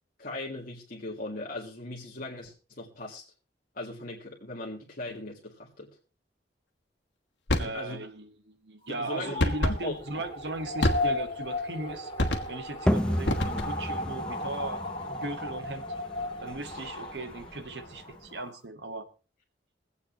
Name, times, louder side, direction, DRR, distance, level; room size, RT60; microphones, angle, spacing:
voice 1, 0.2-3.2 3.7-5.9 7.5-8.0 8.9-9.3 9.8-10.0, left 2 dB, 55° left, -3 dB, 2.0 m, -38 dB
sound 1, 7.5-7.8 9.4-9.8 10.8-11.3 12.2-12.7 13.2-13.9, left 1 dB, 90° left, 1.5 m, -27 dB
voice 2, 7.6-15.8 16.4-19.1, right 2 dB, 70° right, 10 dB, 1.2 m, -38 dB
sound 2, 8.8-18.6, left 2 dB, 30° left, 2.6 m, -36 dB
sound 3, 12.9-18.3, equal, 5° left, 0.5 m, -33 dB
23.5 x 8.4 x 2.9 m, 0.34 s
head